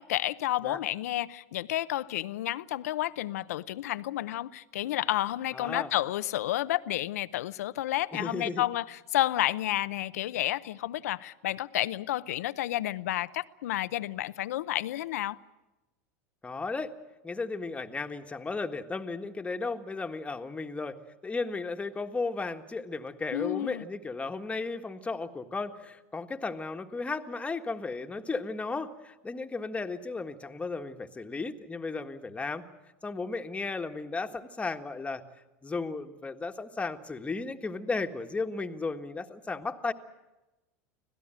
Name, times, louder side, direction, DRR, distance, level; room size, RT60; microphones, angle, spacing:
voice 1, 0.0-15.4 23.3-23.8, left 14 dB, 80° left, 0.7 m, -31 dB
voice 2, 5.5-5.9 8.1-8.6 16.4-16.9 17.2-32.6 33.0-35.2 35.6-39.9, left 3 dB, 15° left, 1.6 m, -35 dB
25.5 x 17.0 x 9.0 m
hypercardioid pair, 95°, 8 cm